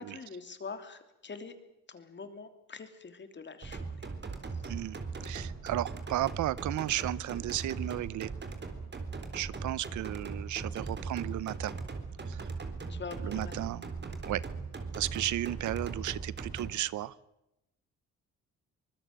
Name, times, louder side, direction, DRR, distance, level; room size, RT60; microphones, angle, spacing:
voice 1, 0.0-1.5 1.9-4.1 4.5-4.6 12.9-13.5, left 5 dB, 40° left, 9 dB, 3.2 m, -44 dB
sound 1, 3.6-16.7, right 4 dB, 35° right, 3.7 m, -39 dB
voice 2, 4.6-8.3 9.3-11.7 12.3-12.5 13.2-13.9 14.3-14.4 14.9-17.2, right 14 dB, 75° right, 20 dB, 0.8 m, -34 dB
24.5 x 20.5 x 7.8 m, 0.91 s
cardioid pair, 90°, 30 cm